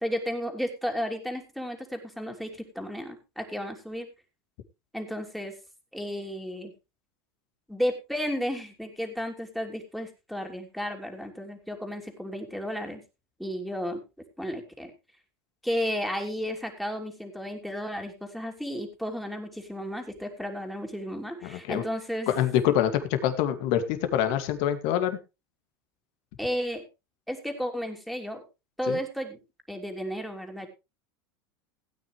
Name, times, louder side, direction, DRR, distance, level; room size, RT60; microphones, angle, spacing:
voice 1, 0.0-4.1 4.9-5.5 5.9-6.7 7.7-13.0 13.4-14.0 14.4-14.9 15.6-22.3 26.4-26.8 27.3-28.4 28.8-29.4 29.7-30.7, equal, ahead, 3 dB, 3.0 m, -33 dB
voice 2, 21.4-21.8 22.3-22.9 23.2-25.2 28.9-29.0, left 10 dB, 65° left, 9 dB, 2.2 m, -25 dB
17.0 x 9.3 x 3.2 m, 0.26 s
supercardioid pair, 110°, 13 cm